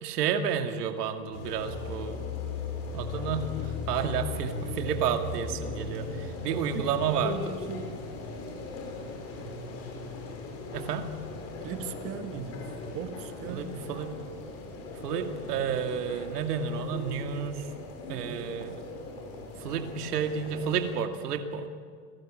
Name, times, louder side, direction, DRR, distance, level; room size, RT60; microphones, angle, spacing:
voice 1, 0.0-2.2 2.9-7.5 10.7-11.1 13.5-14.1 15.0-17.7 18.1-18.8 19.6-21.7, right 7 dB, 80° right, 5 dB, 2.3 m, -31 dB
sound 1, 1.3-21.0, left 3 dB, 30° left, 5.7 m, -38 dB
voice 2, 6.7-8.0 11.6-12.6 12.9-13.8, right 7 dB, 30° right, 7 dB, 1.9 m, -39 dB
29.5 x 18.5 x 8.9 m, 2.1 s
supercardioid pair, 160°, 47 cm